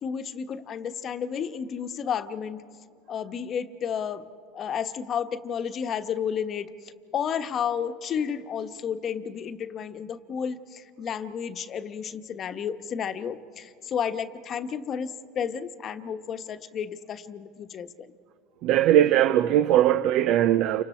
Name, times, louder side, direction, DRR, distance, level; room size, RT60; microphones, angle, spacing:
voice 1, 0.0-2.6 3.1-4.2 4.5-6.7 7.1-18.1, left 7 dB, 40° left, 1.1 m, -32 dB
voice 2, 18.6-20.8, right 12 dB, 60° right, 0.7 m, -20 dB
29.5 x 25.5 x 4.4 m
supercardioid pair, 110°, 0 cm